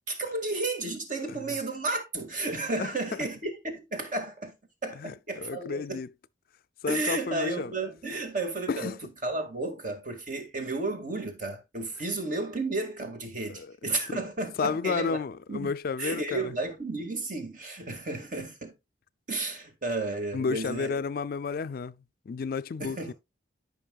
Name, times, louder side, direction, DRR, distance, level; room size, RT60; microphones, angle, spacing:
voice 1, 0.1-4.6 4.8-5.8 6.9-9.0 9.2-15.2 15.5-15.7 16.0-18.7 19.3-21.0 22.8-23.1, right 2 dB, 45° right, 2.1 m, -32 dB
voice 2, 5.0-6.1 6.8-7.7 8.7-9.0 13.5-13.7 14.6-16.5 20.3-22.0 22.3-23.1, left 5 dB, 50° left, 0.4 m, -32 dB
13.5 x 5.4 x 2.3 m
head